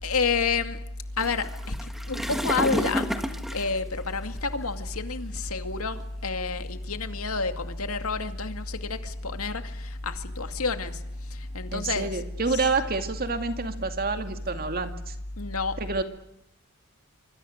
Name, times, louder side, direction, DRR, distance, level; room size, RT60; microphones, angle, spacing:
voice 1, 0.0-0.8 1.2-3.2 3.5-12.7 15.4-15.8, left 4 dB, 80° left, 8 dB, 2.3 m, -29 dB
sound 1, 1.2-4.7 5.4-5.6 6.3-6.4 6.8-6.9 7.5-8.0 8.9-10.0 10.4-11.0 11.4-11.7 12.1-14.9, equal, ahead, 1.6 m, -32 dB
voice 2, 11.7-15.1 15.8-16.0, right 3 dB, 45° right, 7 dB, 2.3 m, -28 dB
25.5 x 25.5 x 6.6 m, 0.78 s
head